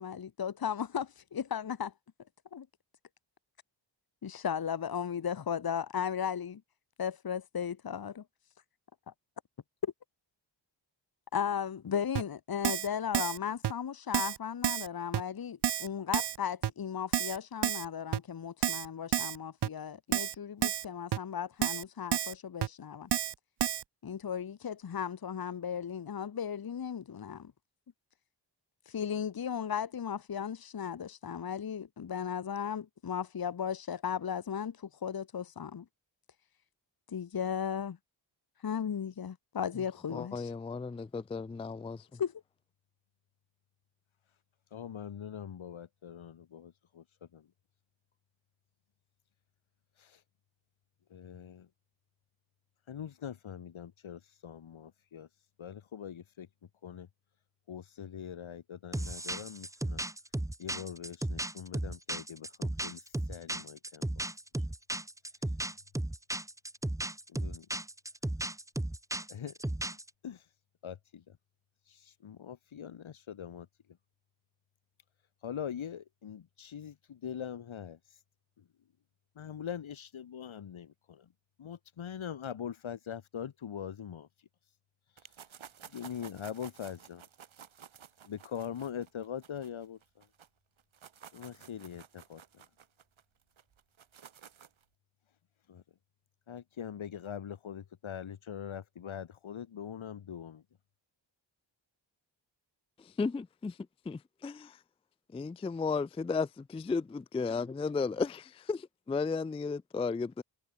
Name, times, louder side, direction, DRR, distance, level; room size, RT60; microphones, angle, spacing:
voice 1, 0.0-1.9 2.5-2.7 4.2-6.6 7.0-8.2 9.1-9.2 9.8-9.9 11.3-23.1 24.0-27.5 28.9-35.8 37.1-38.0 38.6-40.5 42.2-42.3, left 8 dB, 50° left, 1.4 m, -36 dB
Keyboard (musical), 12.2-12.3 12.6-12.9 13.1-13.4 13.6-13.7 14.1-14.4 14.6-14.9 15.1-15.2 15.6-15.9 16.1-16.4 16.6-16.7 17.1-17.4 17.6-17.9 18.1-18.2 18.6-18.9 19.1-19.4 19.6-19.7 20.1-20.4 20.6-20.9 21.1-21.2 21.6-21.8 22.1-22.3 22.6-22.7 23.1-23.3 23.6-23.8, right 11 dB, 60° right, 0.7 m, -30 dB
voice 2, 40.1-42.0 103.2-103.7 104.1-104.7 105.3-110.4, left 4 dB, 15° left, 0.3 m, -34 dB
voice 3, 44.7-47.5 50.0-50.2 51.1-51.7 52.9-55.3 55.6-56.5 56.8-57.1 57.7-60.0 60.6-64.3 67.3-67.7 69.3-69.6 70.2-70.4 70.8-71.4 71.9-73.7 75.4-78.0 78.6-78.7 79.4-81.3 81.6-84.3 85.9-87.2 88.2-90.3 91.3-92.6 95.7-95.8 96.5-100.6, left 8 dB, 85° left, 3.6 m, -43 dB
sound 1, 58.9-70.1, right 1 dB, 5° right, 1.1 m, -35 dB
sound 2, 85.2-90.5 90.8-94.8, right 8 dB, 85° right, 5.8 m, -53 dB
wide cardioid pair, 130°, 46 cm